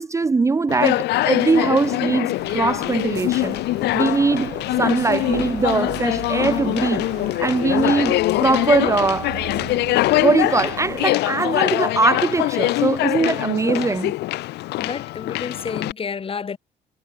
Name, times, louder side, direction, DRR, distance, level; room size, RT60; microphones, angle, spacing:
voice 1, 0.0-3.6 3.9-7.1 7.4-9.4 10.2-14.1, right 4 dB, 15° right, 0.7 m, -21 dB
Conversation, 0.7-15.9, left 17 dB, 80° left, 1.7 m, -23 dB
sound 1, 2.4-11.1, right 19 dB, 85° right, 2.4 m, -38 dB
voice 2, 14.8-16.6, left 6 dB, 35° left, 5.9 m, -30 dB
cardioid pair, 110°, 17 cm